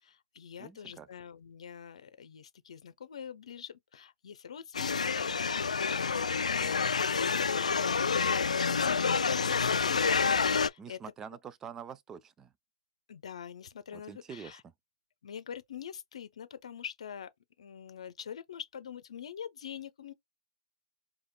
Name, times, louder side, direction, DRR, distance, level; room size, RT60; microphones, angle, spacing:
voice 1, 0.0-6.8 7.2-11.0 13.1-14.6 15.2-17.3 17.6-20.1, left 8 dB, 65° left, 0.7 m, -45 dB
voice 2, 0.6-1.1 10.8-12.5 13.9-14.7, right 7 dB, 15° right, 0.4 m, -46 dB
sound 1, 4.7-10.7, left 5 dB, 90° left, 0.3 m, -28 dB
4.9 x 2.4 x 2.2 m
hypercardioid pair, 140°, 4 cm